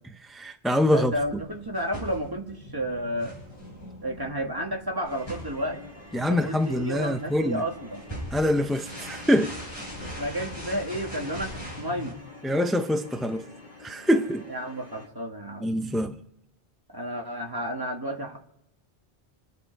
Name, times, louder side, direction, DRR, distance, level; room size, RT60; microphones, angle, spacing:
voice 1, 0.2-1.1 6.1-7.6 8.3-9.6 12.4-13.4 13.8-14.4 15.6-16.2, left 1 dB, ahead, 0.4 m, -24 dB
voice 2, 0.9-3.4 4.0-5.8 6.1-8.0 10.2-12.2 14.5-15.7 16.9-18.4, equal, 20° right, 1.9 m, -32 dB
sound 1, 1.2-12.1, equal, 20° left, 7.3 m, -41 dB
sound 2, 5.1-15.1, left 3 dB, 50° left, 2.6 m, -48 dB
27.5 x 10.5 x 4.6 m
omnidirectional pair, 1.2 m